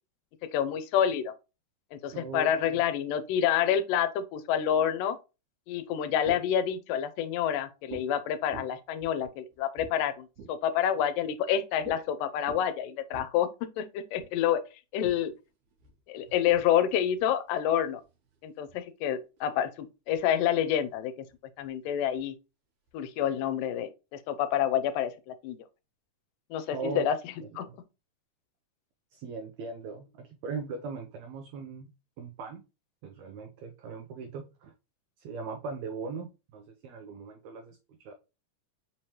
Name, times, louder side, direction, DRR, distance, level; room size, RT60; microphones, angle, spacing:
voice 1, 0.4-1.3 1.9-5.2 5.7-14.6 14.9-15.3 16.1-18.0 18.4-21.1 21.6-22.3 22.9-25.6 26.5-27.2 27.6-27.7, left 9 dB, 85° left, 2.2 m, -28 dB
voice 2, 2.1-2.8 26.7-27.1 27.4-27.5 29.1-31.9 32.2-32.6 33.0-34.7 35.2-38.1, right 5 dB, 90° right, 1.5 m, -39 dB
sound 1, 5.8-6.7 7.9-8.1 8.5-10.7 11.8-12.0 12.3-13.3 14.2-14.3 15.0-18.4 19.1-19.7 20.1-20.2 20.5-22.3 22.9-23.7, right 5 dB, 65° right, 2.1 m, -49 dB
5.4 x 3.1 x 2.9 m
omnidirectional pair, 3.8 m